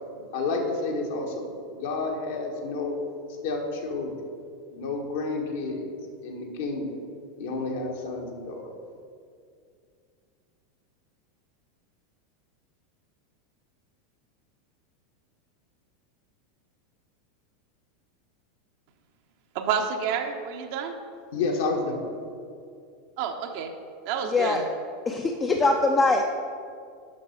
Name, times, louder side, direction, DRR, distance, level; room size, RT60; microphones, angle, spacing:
voice 1, 0.3-3.0 3.4-4.1 4.7-5.9 6.2-6.8 7.4-8.7 21.3-22.0, left 3 dB, 60° left, 1 dB, 1.4 m, -30 dB
voice 2, 19.5-21.0 23.2-23.7 24.0-24.6, right 7 dB, 50° right, 5 dB, 0.8 m, -29 dB
voice 3, 24.3-24.6 25.1-26.2, left 3 dB, 20° left, 2 dB, 0.6 m, -22 dB
7.7 x 6.1 x 5.3 m, 2.3 s
figure-of-eight pair, 85°, 0 cm